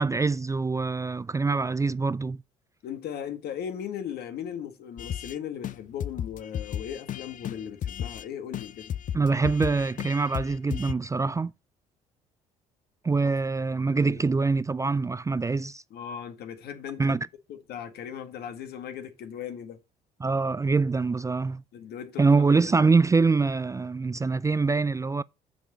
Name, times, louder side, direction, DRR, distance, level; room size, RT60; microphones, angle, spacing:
voice 1, 0.0-2.4 9.1-11.5 13.0-15.8 17.0-17.3 20.2-21.6 22.2-25.2, right 4 dB, 20° right, 0.4 m, -24 dB
voice 2, 2.8-8.9 13.7-14.3 15.9-17.2 17.5-19.8 21.7-22.9, left 9 dB, 65° left, 1.8 m, -38 dB
sound 1, 5.0-5.4 5.6-5.7 6.0-8.3 8.5-10.9, left 9 dB, 50° left, 0.6 m, -34 dB
7.2 x 6.1 x 6.6 m
hypercardioid pair, 60°, 18 cm